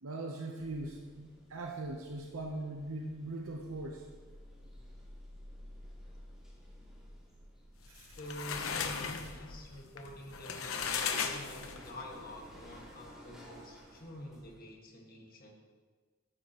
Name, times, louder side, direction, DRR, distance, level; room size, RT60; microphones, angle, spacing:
voice 1, 0.0-4.1 7.9-8.2, right 2 dB, 85° right, 1 dB, 0.8 m, -40 dB
sound 1, 0.6-14.6, equal, 5° right, 2.6 m, -54 dB
sound 2, 7.9-12.0, left 6 dB, 85° left, 0.8 m, -37 dB
voice 2, 8.2-15.5, left 1 dB, 45° left, 0 dB, 1.7 m, -47 dB
13.0 x 9.6 x 3.0 m, 1.5 s
head